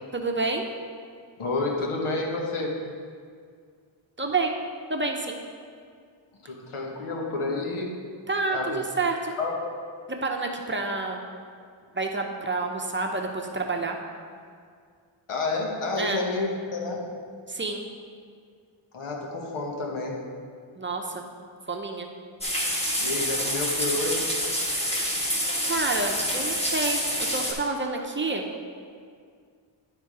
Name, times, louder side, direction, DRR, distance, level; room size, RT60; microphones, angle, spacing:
voice 1, 0.1-0.6 4.2-4.6 4.9-5.4 8.3-9.4 10.2-11.2 11.9-14.0 16.0-16.2 17.5-17.9 20.8-21.3 21.7-22.1 25.6-28.4, right 3 dB, 25° right, 2 dB, 0.7 m, -28 dB
voice 2, 1.4-2.8 6.4-7.9 8.5-8.8 9.4-9.5 15.3-17.0 18.9-20.2 23.0-24.3, left 3 dB, 85° left, -1 dB, 1.3 m, -29 dB
sound 1, 22.4-27.5, equal, 10° left, 1.4 m, -27 dB
10.5 x 3.6 x 4.8 m, 2.1 s
cardioid pair, 80°, 49 cm